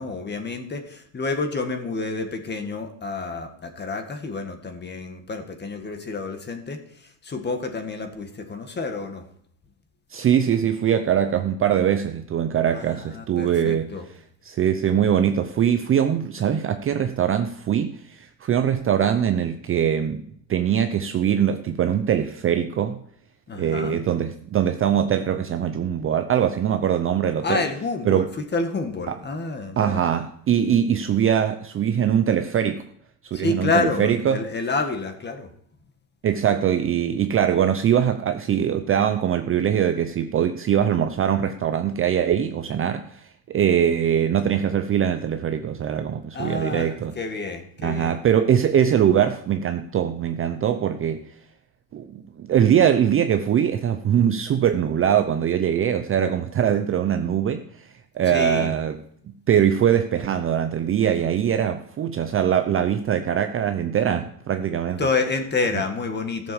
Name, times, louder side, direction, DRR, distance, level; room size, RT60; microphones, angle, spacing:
voice 1, 0.0-9.3 12.7-14.0 23.5-24.0 27.4-30.0 33.3-35.5 46.3-48.2 58.3-58.7 65.0-66.5, left 3 dB, 20° left, 6 dB, 1.8 m, -29 dB
voice 2, 10.1-13.9 14.4-20.2 20.5-23.0 23.5-27.6 28.0-28.3 29.1-29.2 29.8-32.8 33.3-34.4 36.2-47.1 47.8-51.2 51.9-59.0 59.3-65.0, right 9 dB, 30° right, 7 dB, 0.6 m, -22 dB
15.0 x 7.2 x 7.0 m, 0.65 s
cardioid pair, 135°, 47 cm